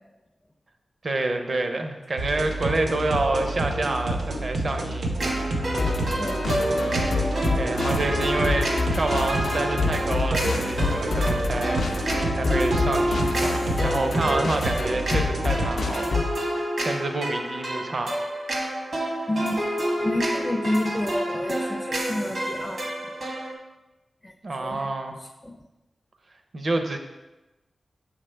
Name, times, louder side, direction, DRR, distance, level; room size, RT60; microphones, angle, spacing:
voice 1, 1.0-5.3 5.8-5.9 7.6-18.2 24.4-25.2 26.5-27.0, right 2 dB, 55° right, 5 dB, 0.7 m, -28 dB
sound 1, 2.2-15.9, right 1 dB, 85° right, 0.9 m, -29 dB
sound 2, 5.2-23.5, right 1 dB, 70° right, 1.2 m, -29 dB
sound 3, 5.8-16.4, left 4 dB, 75° left, 0.5 m, -29 dB
voice 2, 6.2-6.5 19.3-19.6 20.0-23.2 24.2-24.3 24.6-24.9 25.4-25.6, left 1 dB, 15° left, 3 dB, 0.4 m, -29 dB
7.1 x 5.1 x 3.3 m, 1.0 s
wide cardioid pair, 110°, 0 cm